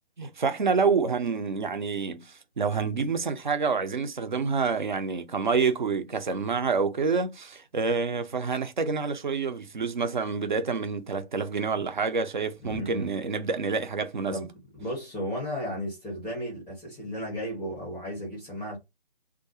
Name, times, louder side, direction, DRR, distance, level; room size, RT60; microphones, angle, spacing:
voice 1, 0.2-14.4, right 5 dB, 45° right, 0.4 m, -28 dB
voice 2, 12.6-13.1 14.3-18.8, equal, ahead, 0.5 m, -34 dB
2.3 x 2.1 x 2.8 m
figure-of-eight pair, 150°, 33 cm